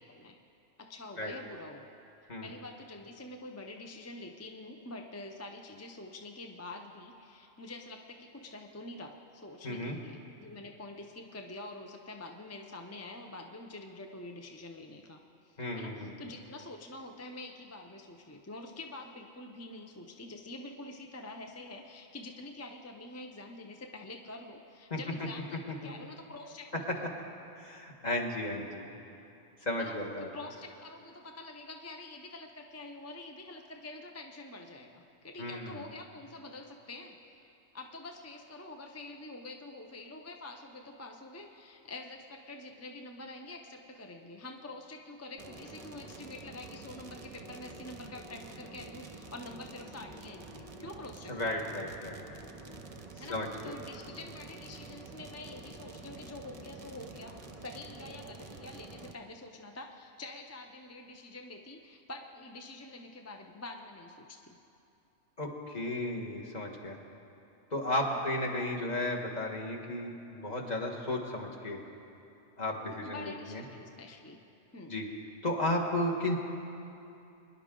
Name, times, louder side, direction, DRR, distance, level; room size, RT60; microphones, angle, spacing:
voice 1, 0.1-0.4 0.8-1.9 2.4-27.2 29.8-37.5 37.7-51.7 53.2-53.4 53.6-64.6 68.1-68.2 73.0-74.4 74.7-75.0, left 2 dB, 20° left, 3 dB, 0.4 m, -46 dB
voice 2, 9.6-10.0 15.6-16.1 24.9-25.0 25.8-25.9 27.6-28.8 29.6-30.3 35.4-35.8 51.3-52.2 53.3-53.7 65.4-67.0 67.7-71.8 72.6-73.6 74.9-75.1 75.4-76.4, left 1 dB, 35° left, -1 dB, 1.5 m, -34 dB
sound 1, 45.4-59.1, right 3 dB, 35° right, 0.7 m, -48 dB
24.5 x 10.5 x 3.8 m, 2.8 s
omnidirectional pair, 1.2 m